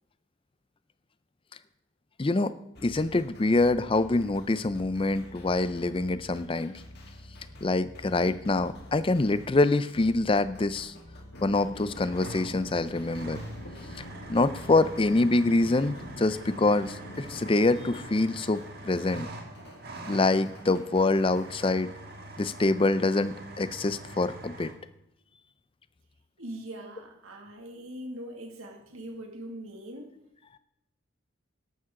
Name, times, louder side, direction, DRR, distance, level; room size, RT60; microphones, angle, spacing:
voice 1, 2.2-2.5 2.8-6.7 7.6-10.9 11.4-13.4 14.3-19.3 20.1-21.9 22.4-24.7, left 2 dB, 25° left, 14 dB, 0.4 m, -25 dB
sound 1, 2.7-21.7, left 1 dB, 50° left, 2.0 m, -49 dB
sound 2, 11.3-17.8, left 1 dB, 80° left, 2.1 m, -46 dB
sound 3, 11.9-24.7, right 2 dB, 50° right, 1.6 m, -44 dB
voice 2, 26.4-30.1, right 1 dB, 85° right, 3 dB, 2.2 m, -41 dB
13.5 x 11.0 x 3.7 m, 0.81 s
head